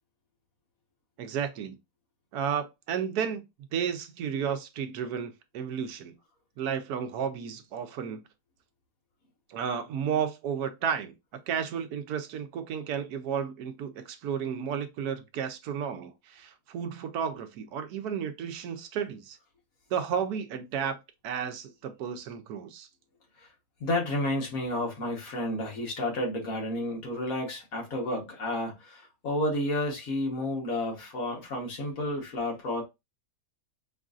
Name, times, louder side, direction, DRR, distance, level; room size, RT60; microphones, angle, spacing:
voice 1, 1.2-1.8 2.3-3.4 3.7-6.1 6.6-8.2 9.5-11.1 11.5-19.4 19.9-21.0 21.2-22.9, right 7 dB, 80° right, 1.2 m, -32 dB
voice 2, 23.8-32.8, left 1 dB, 65° left, 1.8 m, -31 dB
5.3 x 2.5 x 2.4 m
omnidirectional pair, 1.6 m